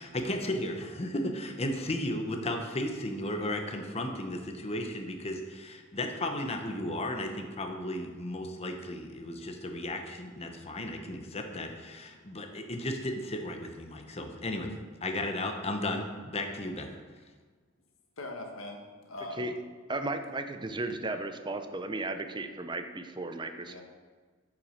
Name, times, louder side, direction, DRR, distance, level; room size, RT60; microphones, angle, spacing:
voice 1, 0.0-14.7 15.0-16.9, left 1 dB, 30° left, 4 dB, 1.0 m, -34 dB
voice 2, 18.2-19.6 23.7-23.8, left 2 dB, 85° left, 3 dB, 1.6 m, -41 dB
voice 3, 19.9-23.8, right 2 dB, 25° right, 7 dB, 0.7 m, -35 dB
9.4 x 6.0 x 6.4 m, 1.5 s
head